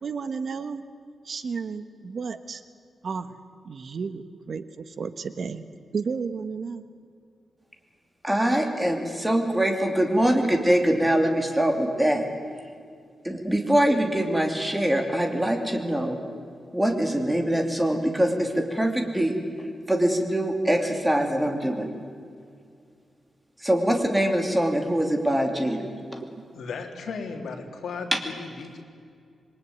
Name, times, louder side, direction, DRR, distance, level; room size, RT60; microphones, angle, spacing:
voice 1, 0.0-0.8 1.2-2.6 3.0-3.3 3.6-5.6 5.9-6.9, right 5 dB, 50° right, 11 dB, 1.2 m, -32 dB
voice 2, 8.2-12.2 13.2-16.2 16.7-21.9 23.6-26.3 28.1-28.2, right 1 dB, 10° right, 4 dB, 2.8 m, -23 dB
voice 3, 26.5-28.8, left 4 dB, 75° left, 3 dB, 3.4 m, -35 dB
27.0 x 22.0 x 9.4 m, 2.3 s
wide cardioid pair, 165°, 0 cm